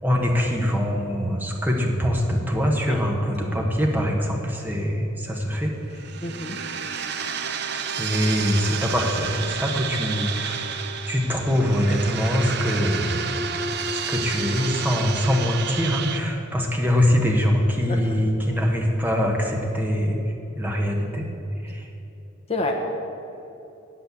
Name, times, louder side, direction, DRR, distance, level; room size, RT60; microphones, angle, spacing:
voice 1, 0.0-6.1 8.0-10.8 11.1-13.3 13.9-20.2 20.6-21.3 21.6-21.9, equal, 10° right, 0 dB, 1.1 m, -23 dB
sound 1, 5.9-16.2, right 5 dB, 50° right, 0.7 m, -30 dB
voice 2, 6.2-6.6 8.0-8.1 17.9-18.0 22.5-22.9, left 2 dB, 30° left, 2 dB, 0.8 m, -28 dB
8.9 x 8.2 x 8.2 m, 2.9 s
head